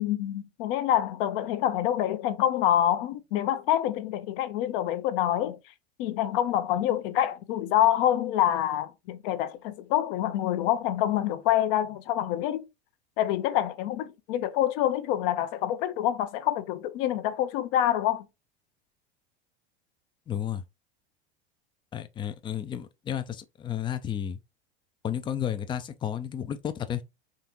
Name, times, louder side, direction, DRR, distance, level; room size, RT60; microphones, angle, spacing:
voice 1, 0.0-5.6 6.0-12.6 13.2-18.3, left 12 dB, 55° left, 0.7 m, -26 dB
voice 2, 20.3-20.6 21.9-24.4 25.0-27.0, left 9 dB, 15° left, 0.3 m, -32 dB
3.7 x 3.4 x 2.9 m
hypercardioid pair, 90°, 33 cm